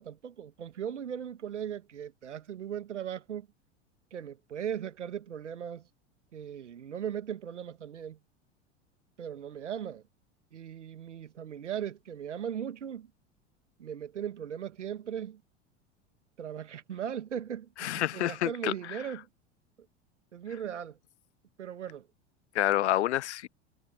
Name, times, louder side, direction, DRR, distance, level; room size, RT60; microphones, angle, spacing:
voice 1, 0.0-3.5 4.1-5.8 6.3-8.2 9.2-10.0 10.5-13.1 13.8-15.4 16.4-19.3 20.3-21.0 21.6-22.1, right 9 dB, 80° right, 2.3 m, -38 dB
voice 2, 17.8-19.0 22.5-23.5, left 14 dB, 70° left, 0.7 m, -28 dB
figure-of-eight pair, 85°, 35 cm